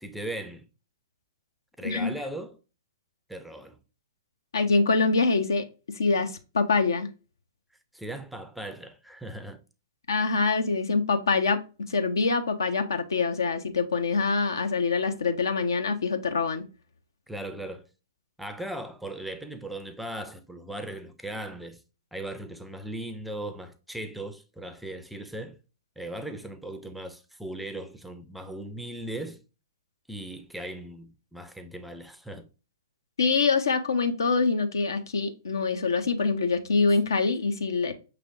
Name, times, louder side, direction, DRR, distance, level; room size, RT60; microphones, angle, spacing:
voice 1, 0.0-0.7 1.8-2.6 3.3-3.8 7.9-9.6 17.3-17.9 18.4-21.8 22.1-25.6 26.0-29.4 30.1-32.5, right 1 dB, ahead, 0.4 m, -38 dB
voice 2, 4.5-5.7 5.9-7.1 10.1-11.6 11.9-16.7 33.2-37.9, left 4 dB, 70° left, 0.6 m, -25 dB
5.8 x 3.3 x 2.5 m
figure-of-eight pair, 115°, 2 cm